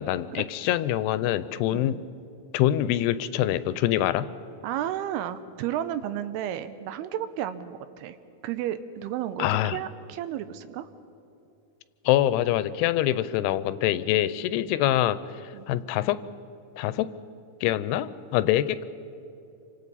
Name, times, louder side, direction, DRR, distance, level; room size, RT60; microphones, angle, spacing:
voice 1, 0.0-2.0 2.5-4.3 9.4-9.8 12.1-16.2 16.8-17.1 17.6-18.8, left 13 dB, 85° left, 14 dB, 2.7 m, -25 dB
voice 2, 4.6-8.2 8.4-10.9 14.2-14.3 15.5-15.7, right 11 dB, 85° right, 12 dB, 2.7 m, -32 dB
28.5 x 25.5 x 4.1 m, 2.7 s
omnidirectional pair, 4.6 m